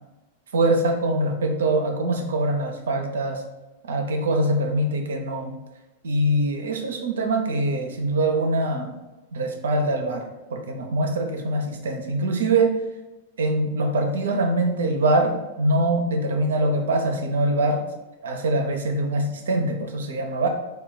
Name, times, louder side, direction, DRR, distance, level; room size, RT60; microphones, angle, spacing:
voice 1, 0.5-3.4 3.9-5.5 6.0-8.9 9.3-12.7 13.4-17.8 18.2-20.5, right 2 dB, 80° right, 4 dB, 0.5 m, -23 dB
2.2 x 2.2 x 3.8 m, 1.1 s
hypercardioid pair, 105°, 0 cm